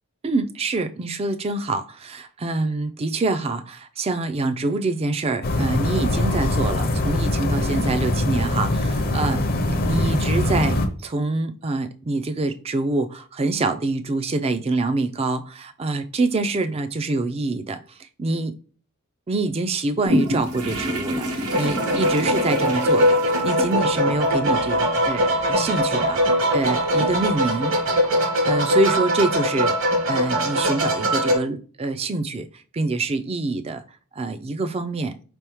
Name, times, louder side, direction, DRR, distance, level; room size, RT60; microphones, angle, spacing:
voice 1, 0.2-9.4 9.8-18.5 19.3-27.8 28.2-33.8 34.1-35.1, right 2 dB, 25° right, 0.3 m, -26 dB
sound 1, 5.4-10.9, left 1 dB, 40° left, 0.6 m, -22 dB
sound 2, 20.0-28.1, equal, 80° right, 1.0 m, -30 dB
sound 3, 21.5-31.4, equal, 60° right, 1.3 m, -21 dB
4.7 x 3.5 x 3.0 m
head